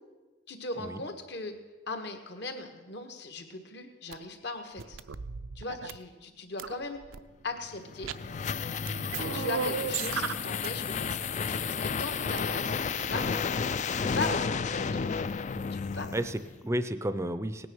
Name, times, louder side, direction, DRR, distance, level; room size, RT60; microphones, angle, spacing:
voice 1, 0.5-1.5 1.9-5.0 5.5-7.0 7.4-8.1 9.2-13.3 13.5-15.2 15.7-16.1, left 2 dB, 60° left, 6 dB, 1.5 m, -39 dB
sound 1, 4.1-4.2 4.8-6.0 6.6-7.2 8.0-8.5 8.9-10.7 11.0-11.1 12.3-12.4, right 6 dB, 85° right, 0.5 m, -35 dB
sound 2, 7.7-16.6, left 5 dB, 35° left, 0.4 m, -32 dB
voice 2, 16.1-17.7, right 1 dB, 15° right, 11 dB, 0.5 m, -33 dB
17.5 x 9.6 x 6.2 m, 1.3 s
head